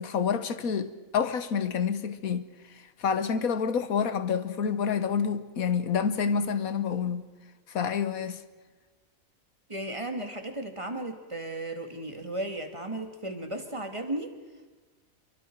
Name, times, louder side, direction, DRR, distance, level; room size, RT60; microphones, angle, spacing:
voice 1, 0.0-2.5 3.0-7.3 7.7-8.4, left 6 dB, 90° left, 1.6 m, -28 dB
voice 2, 9.7-14.3, right 1 dB, 20° right, 2.2 m, -35 dB
27.5 x 24.0 x 4.6 m
omnidirectional pair, 1.4 m